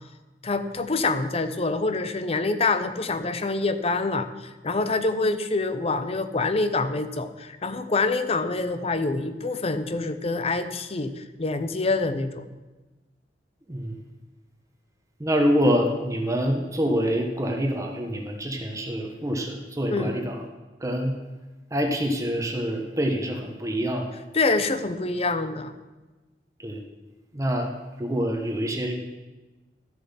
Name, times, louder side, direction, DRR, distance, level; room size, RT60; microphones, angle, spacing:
voice 1, 0.4-12.5 19.9-20.1 24.3-25.7, left 3 dB, 35° left, 11 dB, 0.6 m, -26 dB
voice 2, 13.7-14.0 15.2-20.4 20.8-21.2 21.7-24.1 26.6-26.8 27.3-27.7 28.0-28.9, equal, 20° right, 3 dB, 1.0 m, -26 dB
12.5 x 6.9 x 5.6 m, 1.2 s
head